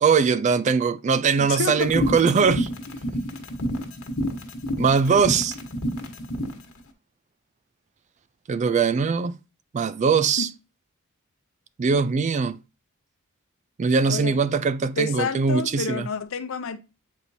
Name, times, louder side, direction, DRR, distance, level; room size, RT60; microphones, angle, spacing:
voice 1, 0.0-2.7 4.8-5.6 8.5-9.4 9.7-10.5 11.8-12.6 13.8-16.1, right 5 dB, 30° right, 0.3 m, -21 dB
voice 2, 1.4-1.9 10.4-10.5 14.0-14.4 15.0-16.8, left 5 dB, 65° left, 0.6 m, -29 dB
sound 1, 1.7-6.6, left 1 dB, 90° left, 1.3 m, -29 dB
8.0 x 4.4 x 2.7 m
head